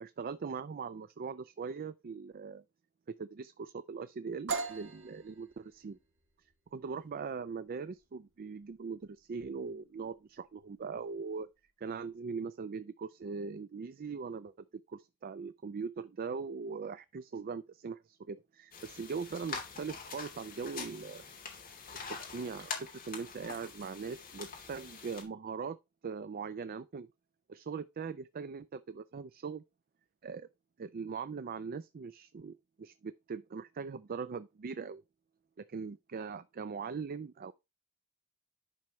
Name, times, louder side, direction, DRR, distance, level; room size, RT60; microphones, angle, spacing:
voice 1, 0.0-2.6 3.1-6.0 6.7-11.5 11.8-14.5 14.9-21.3 21.7-21.8 22.1-25.8 26.0-27.1 27.5-29.6 30.2-30.5 30.8-35.0 35.6-37.5, right 5 dB, 40° right, 0.4 m, -41 dB
sound 1, 4.5-12.1, right 4 dB, 55° right, 1.6 m, -44 dB
sound 2, 18.7-25.2, left 5 dB, 40° left, 2.7 m, -45 dB
10.5 x 5.8 x 3.0 m
head